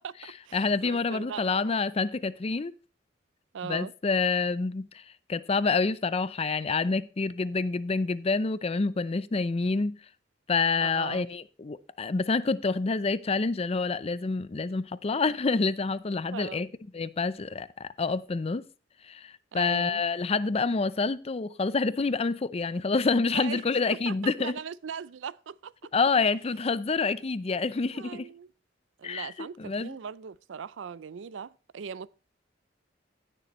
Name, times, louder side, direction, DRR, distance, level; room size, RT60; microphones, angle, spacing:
voice 1, 0.0-1.9 3.5-3.9 10.8-11.3 16.3-16.7 19.5-20.0 23.3-23.6 23.9-25.9 27.9-28.5 29.0-32.1, right 6 dB, 90° right, 0.4 m, -40 dB
voice 2, 0.5-2.7 3.6-5.0 5.3-10.0 10.5-16.7 16.9-18.7 19.0-24.5 25.9-28.3 29.0-30.0, left 4 dB, 35° left, 0.5 m, -27 dB
16.5 x 6.8 x 3.0 m
head